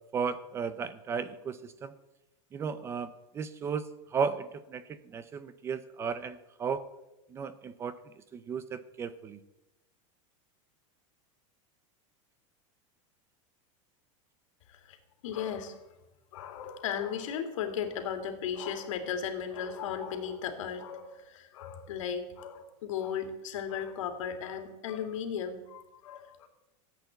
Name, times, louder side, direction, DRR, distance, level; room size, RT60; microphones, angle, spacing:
voice 1, 0.1-1.9 2.5-6.8 7.3-9.4, right 6 dB, 15° right, 15 dB, 0.5 m, -35 dB
voice 2, 15.2-15.9 16.3-26.5, left 8 dB, 80° left, 7 dB, 2.5 m, -36 dB
14.5 x 8.4 x 8.0 m, 0.96 s
supercardioid pair, 170°, 16 cm